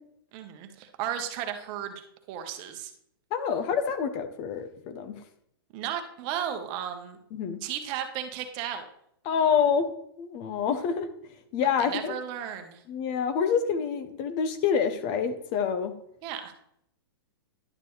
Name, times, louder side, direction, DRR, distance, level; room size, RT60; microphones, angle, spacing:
voice 1, 0.3-2.9 5.7-7.2 7.6-8.8 11.6-12.8 16.2-16.5, right 9 dB, 35° right, 6 dB, 1.1 m, -35 dB
voice 2, 3.3-5.2 7.3-7.6 9.2-9.9 10.2-11.1 11.5-12.2 12.9-15.9, left 7 dB, 35° left, 10 dB, 0.8 m, -27 dB
11.0 x 6.7 x 3.2 m, 0.73 s
hypercardioid pair, 145°, 13 cm